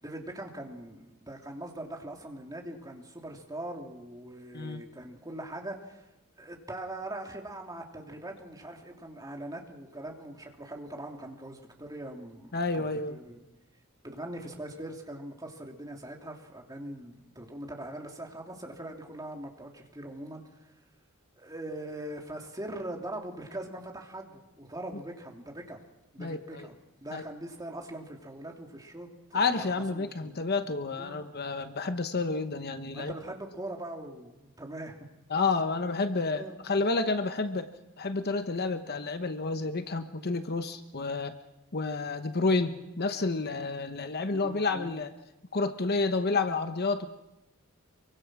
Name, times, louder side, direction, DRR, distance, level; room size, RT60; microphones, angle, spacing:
voice 1, 0.0-6.1 6.4-13.4 14.0-20.7 21.4-25.8 26.1-30.4 31.0-31.2 32.9-35.0 36.4-36.6 44.3-45.0, right 1 dB, 15° right, 1 dB, 2.8 m, -42 dB
voice 2, 12.5-13.2 26.2-26.7 27.1-27.2 29.3-33.1 35.3-37.7 38.0-41.4 41.7-45.1 45.5-47.1, left 3 dB, 45° left, 9 dB, 1.0 m, -30 dB
25.5 x 23.5 x 6.1 m, 0.96 s
head